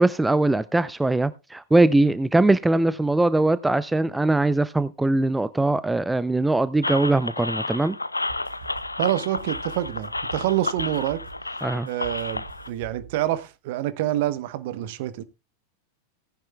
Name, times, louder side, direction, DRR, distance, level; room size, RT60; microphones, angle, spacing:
voice 1, 0.0-8.0 11.6-11.9, right 2 dB, 5° right, 0.5 m, -21 dB
sound 1, 6.8-12.7, left 2 dB, 85° left, 0.5 m, -31 dB
sound 2, 8.2-13.5, right 6 dB, 70° right, 4.4 m, -44 dB
voice 2, 9.0-11.2 11.8-15.2, right 13 dB, 50° right, 1.0 m, -27 dB
18.0 x 10.0 x 2.3 m
figure-of-eight pair, 90°, 0 cm